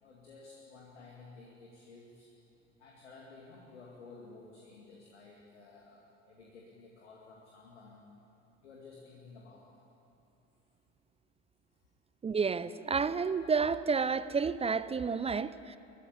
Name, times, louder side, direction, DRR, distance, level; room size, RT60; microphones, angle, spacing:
voice 1, 0.0-2.3 2.8-8.1 8.6-9.7 11.7-11.9, left 3 dB, 75° left, 2.3 m, -53 dB
voice 2, 12.2-15.8, right 5 dB, 15° right, 0.5 m, -30 dB
22.5 x 13.5 x 9.9 m
figure-of-eight pair, 60°, 34 cm